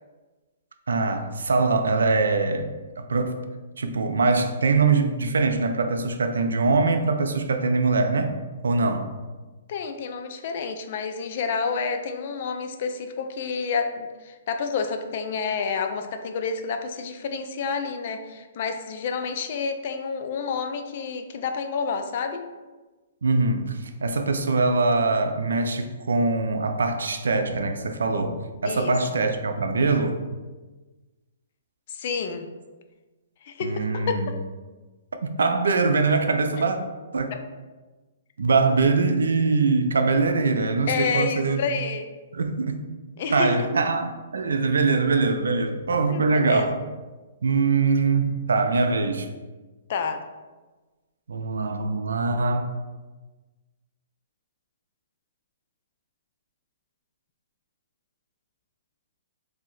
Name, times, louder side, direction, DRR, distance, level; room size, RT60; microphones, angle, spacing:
voice 1, 0.9-2.7 3.0-3.4 3.8-8.3 8.6-9.1 23.2-30.2 33.6-34.3 35.4-36.8 37.1-37.3 38.4-41.6 42.3-42.8 43.3-46.8 47.4-49.3 51.3-52.7, right 3 dB, 85° right, 7 dB, 0.3 m, -23 dB
voice 2, 9.7-22.4 28.6-28.9 31.9-32.5 33.4-34.3 37.3-37.4 40.9-42.1 43.2-43.7 46.1-46.7 49.9-50.2, left 5 dB, 50° left, 7 dB, 0.3 m, -29 dB
2.7 x 2.1 x 3.8 m, 1.2 s
hypercardioid pair, 145°, 0 cm